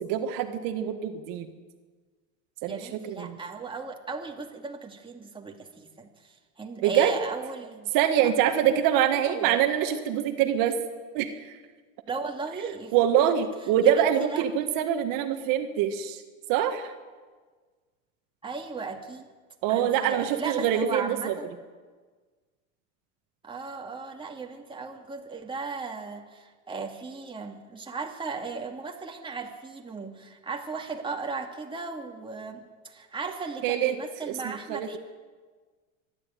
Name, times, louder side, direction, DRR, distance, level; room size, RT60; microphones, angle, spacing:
voice 1, 0.1-1.5 2.6-3.4 6.8-7.1 7.9-10.8 11.1-11.5 12.9-16.2 16.5-16.9 19.6-21.3 33.6-33.9 34.3-35.0, right 10 dB, 55° right, 6 dB, 1.8 m, -25 dB
voice 2, 2.7-7.9 8.2-8.3 9.1-9.6 12.1-13.3 13.8-14.4 18.4-19.3 19.7-21.5 23.4-35.0, right 4 dB, 10° right, 1 dB, 2.5 m, -36 dB
24.5 x 12.0 x 9.2 m, 1.5 s
supercardioid pair, 120°, 40 cm